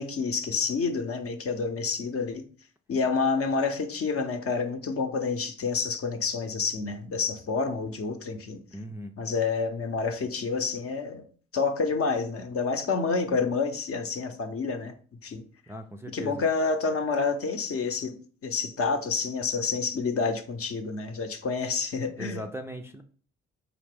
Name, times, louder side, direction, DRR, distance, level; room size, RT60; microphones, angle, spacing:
voice 1, 0.0-2.4 2.9-8.6 9.2-11.2 11.5-14.9 15.2-15.4 16.1-18.1 18.4-22.4, left 4 dB, 45° left, 0.7 m, -28 dB
voice 2, 8.7-9.1 15.7-16.4 22.2-23.0, right 1 dB, 10° right, 0.4 m, -38 dB
4.1 x 2.9 x 3.3 m
hypercardioid pair, 40°, 33 cm